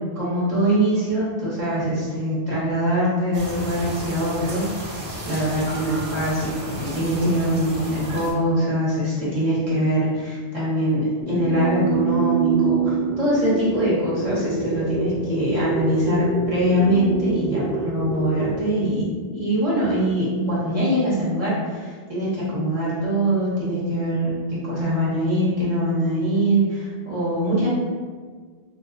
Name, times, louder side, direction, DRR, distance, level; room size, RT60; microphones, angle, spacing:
voice 1, 0.1-27.7, right 1 dB, 35° right, -9 dB, 1.1 m, -23 dB
sound 1, 3.3-8.3, equal, 75° right, 1.0 m, -33 dB
sound 2, 11.2-18.6, right 4 dB, 15° left, 0.6 m, -25 dB
2.6 x 2.3 x 3.6 m, 1.5 s
omnidirectional pair, 1.1 m